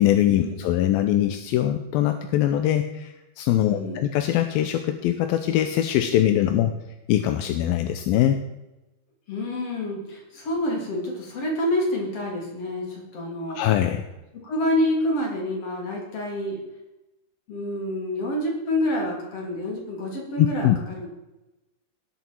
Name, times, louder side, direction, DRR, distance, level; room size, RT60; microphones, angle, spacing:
voice 1, 0.0-6.7 7.1-8.4 13.6-14.0 20.4-20.8, left 12 dB, 80° left, 7 dB, 2.5 m, -22 dB
voice 2, 3.6-4.0 9.3-13.6 14.4-16.6 17.5-21.1, left 1 dB, 40° left, -2 dB, 4.1 m, -27 dB
18.5 x 7.2 x 4.5 m, 0.98 s
omnidirectional pair, 4.2 m